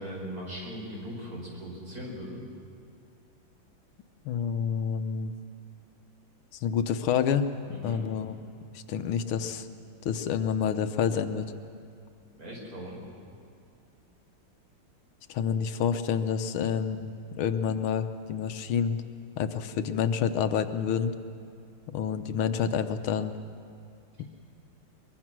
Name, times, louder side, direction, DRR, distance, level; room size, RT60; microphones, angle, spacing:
voice 1, 0.0-2.4 7.7-8.0 12.4-13.0, equal, 45° right, -3 dB, 5.7 m, -39 dB
voice 2, 4.3-5.3 6.6-7.5 7.8-8.4 8.7-9.7 10.0-11.5 15.3-19.0 19.4-21.1 21.9-23.3, left 7 dB, 85° left, 9 dB, 1.7 m, -28 dB
23.0 x 22.5 x 6.2 m, 2.4 s
omnidirectional pair, 2.3 m